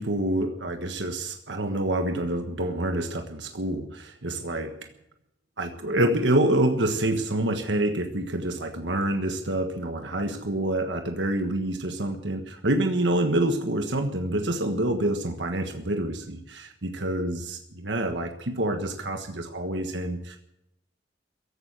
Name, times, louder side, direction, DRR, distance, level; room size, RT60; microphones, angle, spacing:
voice 1, 0.0-4.7 5.6-20.4, right 1 dB, 80° right, 5 dB, 1.5 m, -27 dB
15.5 x 11.5 x 7.5 m, 0.83 s
head